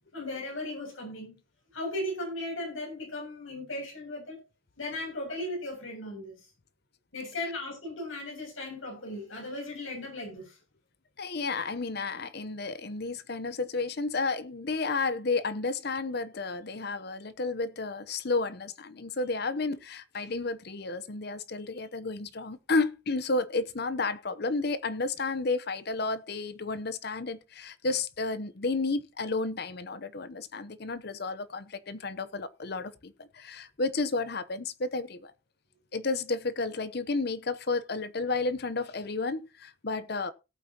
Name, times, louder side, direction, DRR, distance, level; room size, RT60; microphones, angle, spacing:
voice 1, 0.1-1.4 1.7-4.4 4.8-6.4 7.1-10.6, left 1 dB, 85° left, 7.1 m, -37 dB
voice 2, 11.2-35.3 35.9-40.3, left 3 dB, 50° left, 0.8 m, -32 dB
18.0 x 8.7 x 2.9 m
head